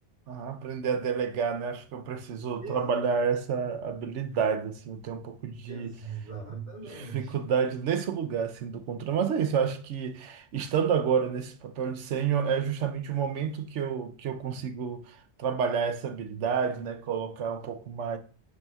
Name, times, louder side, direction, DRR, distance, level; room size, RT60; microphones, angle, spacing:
voice 1, 0.3-5.9 6.9-18.2, right 6 dB, 90° right, 1.0 m, -29 dB
voice 2, 2.6-3.1 5.7-7.4, right 5 dB, 30° right, 2.8 m, -40 dB
9.6 x 4.2 x 2.4 m
omnidirectional pair, 1.2 m